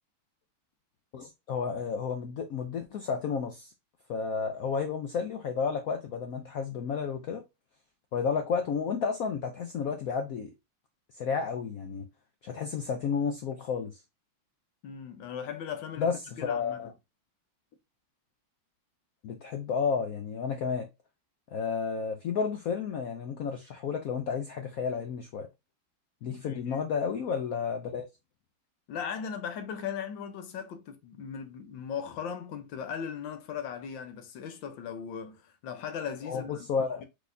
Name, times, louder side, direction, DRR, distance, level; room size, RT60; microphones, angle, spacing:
voice 1, 1.1-3.7 4.1-7.4 8.1-10.5 11.2-12.0 12.4-14.0 16.0-16.9 19.2-20.9 21.5-25.5 26.2-28.1 36.3-37.0, left 6 dB, 85° left, 0.7 m, -31 dB
voice 2, 14.8-16.1 16.4-16.9 26.2-26.8 28.9-36.7, left 7 dB, 70° left, 1.5 m, -38 dB
4.8 x 4.1 x 2.7 m
omnidirectional pair, 2.2 m